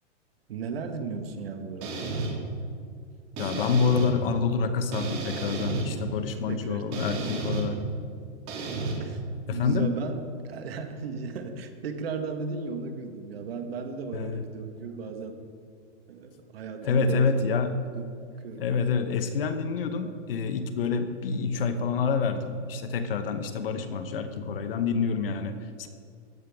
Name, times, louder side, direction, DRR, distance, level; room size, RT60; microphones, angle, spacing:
voice 1, 0.5-2.0 6.5-7.4 9.0-9.2 9.5-15.4 16.1-18.1 18.4-18.6, right 4 dB, 55° right, 6 dB, 1.4 m, -36 dB
sound 1, 1.8-2.3 3.4-4.1 4.9-5.9 6.9-7.6 8.5-8.9, right 3 dB, 25° right, 1.8 m, -32 dB
voice 2, 3.4-7.8 9.5-9.9 14.1-14.5 16.8-17.8 18.5-25.9, left 5 dB, 50° left, 9 dB, 0.9 m, -27 dB
15.0 x 10.5 x 3.5 m, 2.2 s
hypercardioid pair, 170°, 36 cm